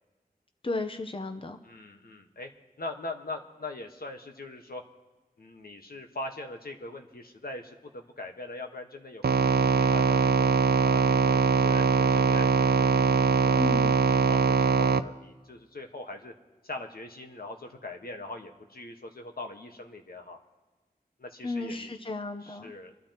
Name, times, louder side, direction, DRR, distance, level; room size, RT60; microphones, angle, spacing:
voice 1, 0.6-1.6 13.6-14.0 21.4-22.7, left 2 dB, 35° left, 7 dB, 0.8 m, -34 dB
voice 2, 1.6-2.5 2.8-4.8 5.4-10.5 10.8-13.6 14.1-16.3 16.6-20.4 21.2-21.9 22.4-22.9, left 2 dB, 75° left, 3 dB, 1.3 m, -41 dB
sound 1, 9.2-15.0, right 5 dB, 85° right, 0.5 m, -22 dB
25.5 x 12.0 x 2.9 m, 1.3 s
wide cardioid pair, 65°, 16 cm